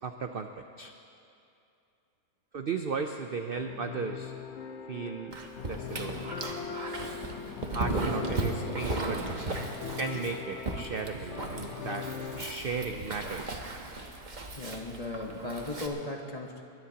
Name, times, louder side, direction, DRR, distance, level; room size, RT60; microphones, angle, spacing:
voice 1, 0.0-0.9 2.5-4.3 4.9-5.4 5.6-6.2 7.7-9.2 10.0-12.1 12.4-13.6, right 5 dB, 55° right, 5 dB, 0.6 m, -35 dB
sound 1, 3.6-12.5, left 6 dB, 55° left, 1.2 m, -40 dB
Dog, 5.3-15.9, right 2 dB, 35° right, 1.1 m, -36 dB
sound 2, 5.6-12.0, left 6 dB, 70° left, 1.4 m, -49 dB
voice 2, 14.6-16.6, left 2 dB, 25° left, 0 dB, 1.3 m, -37 dB
21.0 x 21.0 x 2.9 m, 2.6 s
omnidirectional pair, 1.6 m